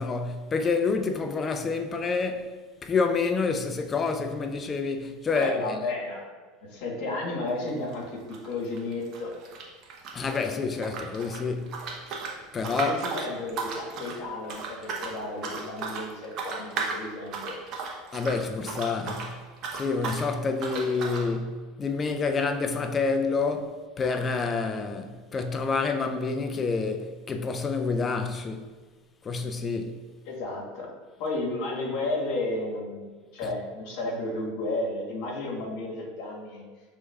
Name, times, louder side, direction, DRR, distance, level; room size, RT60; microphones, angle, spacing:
voice 1, 0.0-2.5 2.8-5.7 10.1-11.8 12.5-13.0 18.1-19.3 19.7-28.7 29.2-30.0, left 4 dB, 25° left, 0.4 m, -28 dB
voice 2, 5.3-6.3 6.7-9.4 12.8-17.5 20.7-21.2 30.3-30.9 31.2-36.6, left 2 dB, 65° left, 1.3 m, -33 dB
sound 1, 7.5-7.7 7.9-10.5 10.8-19.3 19.6-20.3 20.6-21.3, right 4 dB, 50° right, 0.8 m, -35 dB
5.9 x 3.3 x 2.3 m
supercardioid pair, 125°, 0 cm